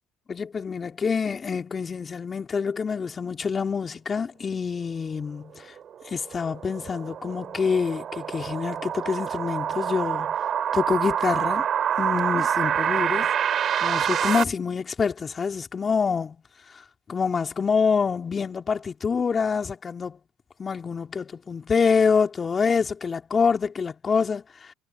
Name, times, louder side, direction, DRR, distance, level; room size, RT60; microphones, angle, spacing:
voice 1, 0.3-5.7 6.0-10.4 10.7-11.7 12.0-13.3 13.8-16.4 16.7-16.8 17.1-20.2 20.6-24.7, left 5 dB, 35° left, 2.9 m, -26 dB
sound 1, 5.8-14.4, right 9 dB, 50° right, 7.4 m, -26 dB
hypercardioid pair, 65°, 0 cm